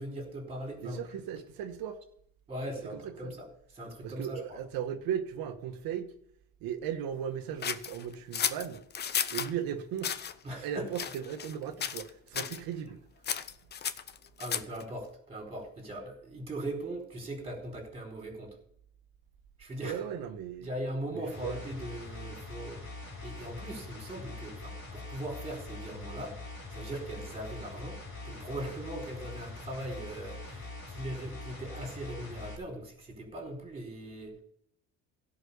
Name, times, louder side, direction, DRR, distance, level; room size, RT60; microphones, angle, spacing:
voice 1, 0.0-1.1 2.5-3.5 3.7-4.6 10.4-10.9 14.4-18.6 19.6-20.0 20.6-22.8 23.2-26.4 26.7-28.0 28.2-34.3, right 1 dB, 15° right, 4.4 m, -40 dB
voice 2, 0.8-2.0 3.2-3.3 4.0-6.1 6.6-8.8 9.3-10.2 10.5-13.0 19.8-20.7 21.4-21.5, right 9 dB, 70° right, 1.6 m, -36 dB
sound 1, 7.6-9.5 10.0-10.3 10.9-11.6 11.8-12.1 12.3-12.6 13.2-14.8, left 8 dB, 30° left, 0.6 m, -33 dB
sound 2, 21.3-32.6, left 2 dB, 50° left, 4.0 m, -43 dB
16.5 x 5.6 x 7.0 m
cardioid pair, 160°, 36 cm